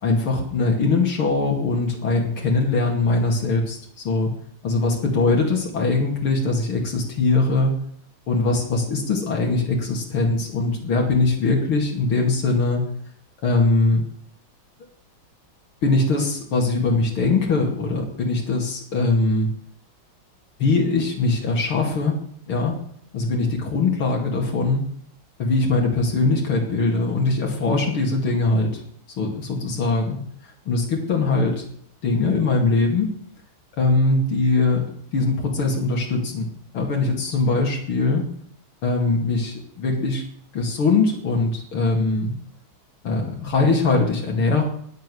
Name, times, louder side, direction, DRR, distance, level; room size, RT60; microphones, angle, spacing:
voice 1, 0.0-3.8 4.0-4.3 4.6-7.8 8.3-12.8 13.4-14.0 15.8-19.5 20.6-22.2 22.5-22.8 23.1-24.8 25.4-28.8 29.2-30.2 30.7-31.6 32.0-33.1 33.8-34.8 35.1-36.5 36.7-38.3 38.8-40.2 40.5-42.3 43.0-44.6, left 3 dB, 85° left, 0 dB, 3.3 m, -21 dB
20.0 x 7.4 x 6.4 m, 0.63 s
omnidirectional pair, 2.3 m